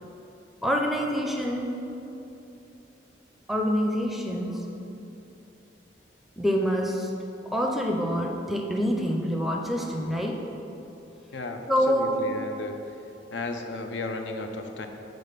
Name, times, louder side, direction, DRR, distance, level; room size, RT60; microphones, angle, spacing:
voice 1, 0.6-1.8 3.5-4.7 6.4-7.1 7.5-10.5 11.7-12.1, equal, ahead, 1 dB, 0.5 m, -26 dB
voice 2, 11.9-12.8 13.3-14.9, left 3 dB, 80° left, 5 dB, 0.6 m, -34 dB
7.7 x 4.1 x 6.6 m, 2.9 s
head